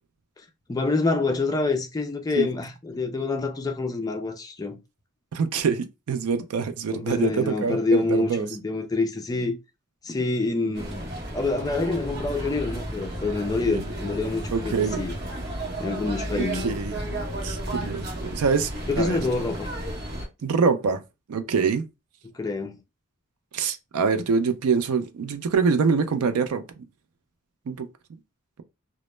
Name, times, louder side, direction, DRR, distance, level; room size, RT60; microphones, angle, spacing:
voice 1, 0.7-4.8 6.9-9.6 10.0-15.1 15.8-16.7 18.9-19.7 22.3-22.8, left 3 dB, 15° left, 0.3 m, -26 dB
voice 2, 5.3-8.5 10.6-10.7 13.7-13.8 14.5-15.0 16.4-17.0 17.4-19.2 20.4-21.0 21.3-21.9 23.5-26.8 27.7-27.9, right 5 dB, 90° right, 0.4 m, -25 dB
sound 1, 10.7-20.3, right 1 dB, 50° right, 0.8 m, -33 dB
2.0 x 2.0 x 3.0 m
head